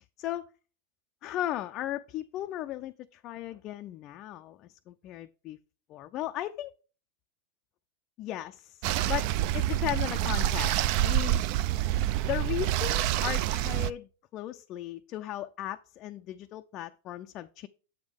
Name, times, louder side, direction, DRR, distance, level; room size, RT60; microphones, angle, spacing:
voice 1, 0.2-0.5 1.2-5.6 5.9-6.7 8.2-11.4 11.7-11.8 12.2-17.7, left 13 dB, 40° left, 0.3 m, -36 dB
sound 1, 8.8-13.9, right 13 dB, 50° right, 0.3 m, -27 dB
7.2 x 3.5 x 5.0 m
supercardioid pair, 130°, 0 cm